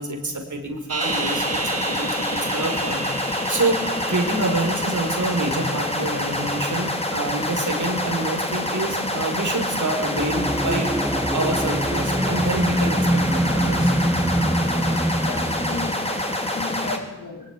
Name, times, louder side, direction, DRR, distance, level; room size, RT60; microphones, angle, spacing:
voice 1, 0.0-3.8 4.1-13.9, right 2 dB, 65° right, 4 dB, 4.9 m, -27 dB
sound 1, 0.9-6.8, right 4 dB, 50° right, 1.3 m, -33 dB
sound 2, 1.0-17.0, left 1 dB, 20° left, 4.1 m, -26 dB
sound 3, 10.1-15.9, right 1 dB, 10° right, 1.4 m, -24 dB
voice 2, 15.2-17.5, left 3 dB, 75° left, 3 dB, 4.7 m, -34 dB
21.5 x 18.5 x 9.9 m, 1.0 s
wide cardioid pair, 60°, 32 cm